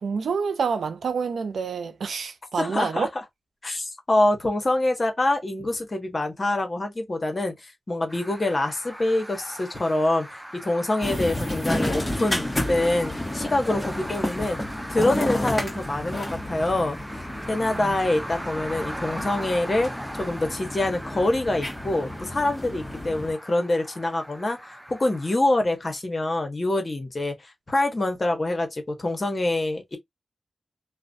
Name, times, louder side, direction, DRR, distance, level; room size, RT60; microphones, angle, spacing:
voice 1, 0.0-3.1 17.7-18.0, right 5 dB, 90° right, 0.4 m, -28 dB
voice 2, 2.6-3.1 3.6-14.6 14.9-17.0 17.5-30.0, left 2 dB, 45° left, 1.0 m, -25 dB
sound 1, 8.1-25.3, equal, 10° right, 0.4 m, -40 dB
sound 2, 11.0-23.3, left 1 dB, 20° left, 1.0 m, -31 dB
2.3 x 2.1 x 2.5 m
cardioid pair, 45°, 0 cm